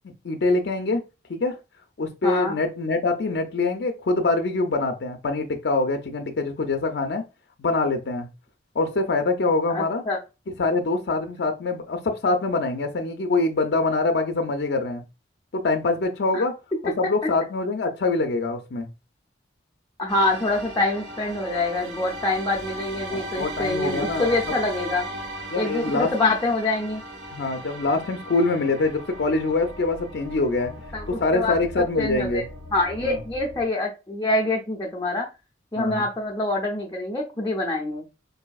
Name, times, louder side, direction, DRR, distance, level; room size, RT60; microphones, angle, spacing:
voice 1, 0.2-1.0 1.3-1.6 2.0-7.2 7.6-8.3 8.7-10.0 10.6-15.0 15.5-16.5 16.8-18.9 23.1-24.4 25.5-26.1 27.3-30.7 31.1-32.5 33.0-33.2 35.8-36.0, left 3 dB, 70° left, 0.5 m, -24 dB
voice 2, 2.2-2.6 9.7-10.2 16.3-16.4 20.0-25.0 25.6-27.0 30.9-31.5 32.0-32.4 32.7-35.3 35.7-38.0, left 2 dB, 20° left, 0.6 m, -25 dB
sound 1, 20.1-33.6, right 1 dB, 70° right, 1.6 m, -37 dB
4.8 x 2.6 x 2.3 m
head